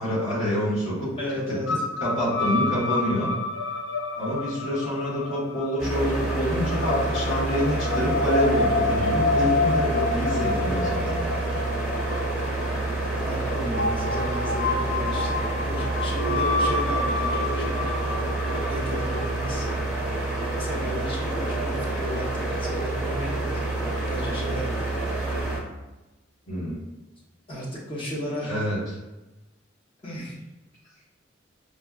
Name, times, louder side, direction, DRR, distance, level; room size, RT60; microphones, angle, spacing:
voice 1, 0.0-1.1 2.0-3.3 4.2-11.2 26.5-26.8 28.5-28.8, equal, 85° left, -7 dB, 1.3 m, -27 dB
voice 2, 1.2-1.7 10.3-10.8 13.2-17.8 18.7-19.7 20.6-23.6 24.1-24.8 27.5-28.7 30.0-30.4, equal, 25° left, -5 dB, 0.8 m, -34 dB
sound 1, 1.7-19.8, left 3 dB, 60° left, 0.3 m, -29 dB
sound 2, 5.8-25.6, right 2 dB, 5° right, 0.7 m, -28 dB
5.2 x 2.2 x 2.3 m, 1.1 s
head